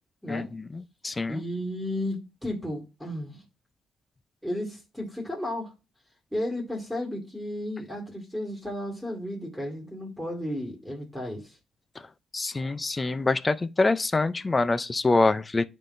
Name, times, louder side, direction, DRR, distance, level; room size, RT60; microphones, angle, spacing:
voice 1, 0.3-1.4 12.3-15.7, left 3 dB, 25° left, 0.5 m, -25 dB
voice 2, 1.3-3.4 4.4-5.7 6.3-11.6, left 1 dB, ahead, 1.9 m, -33 dB
9.7 x 3.7 x 2.6 m
cardioid pair, 90°, 0 cm